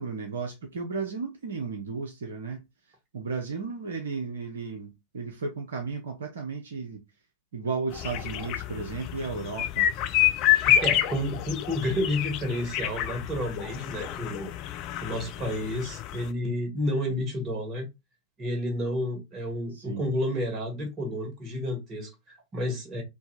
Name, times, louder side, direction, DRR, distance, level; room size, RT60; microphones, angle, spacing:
voice 1, 0.0-2.6 3.1-7.0 7.5-9.9 19.7-20.1, right 4 dB, 65° right, 0.8 m, -34 dB
sound 1, 7.9-16.3, left 11 dB, 40° left, 0.5 m, -28 dB
voice 2, 10.5-14.5 15.0-17.9 18.4-23.0, left 1 dB, 30° right, 1.9 m, -30 dB
3.7 x 2.9 x 4.0 m
figure-of-eight pair, 90°, 0 cm